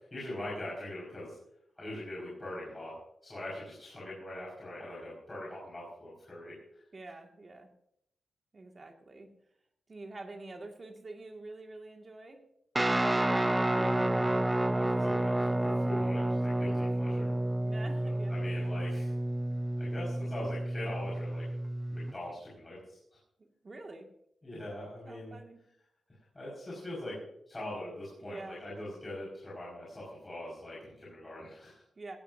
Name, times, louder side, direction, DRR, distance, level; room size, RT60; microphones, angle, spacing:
voice 1, 0.1-1.4 1.8-3.0 3.2-6.6 13.2-14.3 14.6-17.3 18.0-19.1 19.8-21.5 21.9-23.2 24.4-25.3 26.3-27.2 27.5-31.8, left 1 dB, 20° left, -5 dB, 5.1 m, -42 dB
voice 2, 6.9-7.7 8.5-9.3 9.9-12.4 17.6-18.5 23.4-24.1 25.1-25.6 28.2-28.6 32.0-32.2, right 2 dB, 30° right, 2 dB, 2.0 m, -47 dB
Guitar, 12.8-22.1, right 1 dB, 10° right, 0.4 m, -30 dB
17.0 x 17.0 x 2.7 m, 0.73 s
wide cardioid pair, 150°, 0 cm